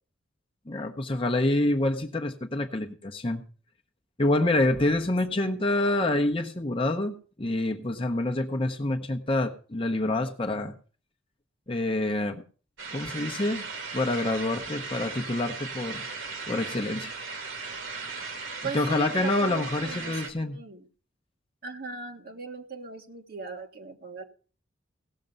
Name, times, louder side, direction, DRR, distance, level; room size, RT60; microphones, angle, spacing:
voice 1, 0.7-3.4 4.2-10.7 11.7-12.4 12.9-13.7 13.9-16.0 16.5-17.2 18.7-20.6, left 2 dB, 25° left, 3 dB, 0.8 m, -27 dB
sound 1, 12.8-20.3, right 4 dB, 75° right, 2.1 m, -37 dB
voice 2, 18.6-20.8 21.6-24.2, right 4 dB, 50° right, 3 dB, 1.5 m, -39 dB
17.5 x 6.6 x 5.3 m, 0.39 s
head